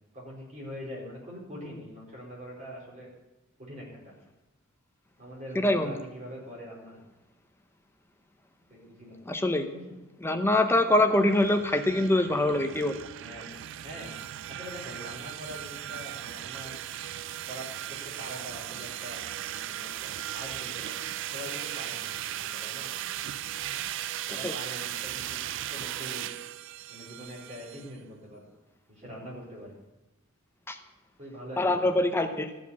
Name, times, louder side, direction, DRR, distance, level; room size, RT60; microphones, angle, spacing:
voice 1, 0.1-3.1 3.6-4.1 5.2-7.0 8.7-9.2 9.7-9.8 13.1-13.5 13.8-14.1 14.5-16.8 17.5-19.2 19.5-22.9 24.3-26.3 26.9-28.5 28.9-29.8 31.2-31.8, equal, 35° right, -5 dB, 4.2 m, -43 dB
voice 2, 5.5-6.0 9.3-9.7 10.2-12.9 24.4-24.5 30.7-30.8 31.6-32.5, left 1 dB, 10° left, 7 dB, 0.7 m, -24 dB
sound 1, 11.1-27.9, right 12 dB, 60° right, 0.4 m, -37 dB
13.5 x 5.0 x 8.2 m, 1.1 s
head